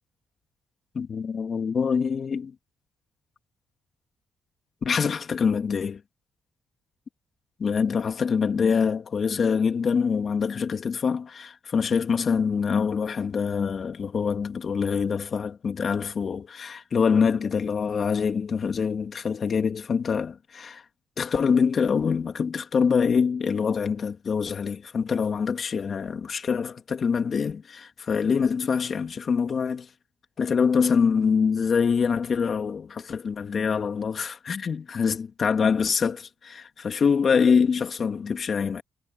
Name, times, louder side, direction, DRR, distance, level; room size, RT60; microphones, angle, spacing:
voice 1, 0.9-2.5 4.8-6.0 7.6-20.8 21.2-29.9 30.4-38.8, left 6 dB, 45° left, 2.5 m, -25 dB
cardioid pair, 90°, 0 cm